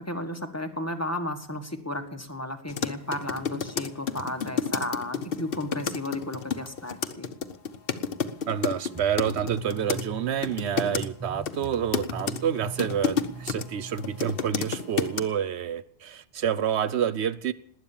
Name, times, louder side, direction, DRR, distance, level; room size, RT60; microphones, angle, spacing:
voice 1, 0.0-7.3, left 1 dB, 15° left, 6 dB, 1.5 m, -33 dB
sound 1, 2.7-10.0 10.4-11.1 11.5-13.6 14.0-15.2, left 6 dB, 60° left, 1.1 m, -30 dB
voice 2, 8.5-17.5, right 8 dB, 85° right, 15 dB, 1.1 m, -28 dB
sound 2, 8.9-14.3, right 4 dB, 20° right, 0.6 m, -41 dB
19.5 x 9.3 x 7.2 m, 0.65 s
omnidirectional pair, 1.1 m